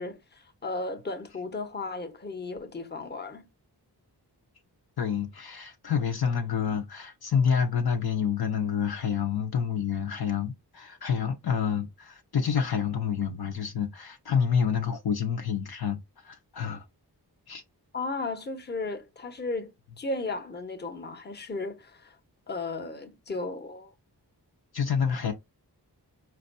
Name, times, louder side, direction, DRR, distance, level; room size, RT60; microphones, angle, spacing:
voice 1, 0.0-3.5 17.9-22.2 22.5-23.9, left 3 dB, 25° left, 0.8 m, -35 dB
voice 2, 5.0-16.8 17.5-17.6 24.7-25.3, left 7 dB, 60° left, 0.7 m, -28 dB
4.4 x 2.5 x 2.5 m
cardioid pair, 50°, 41 cm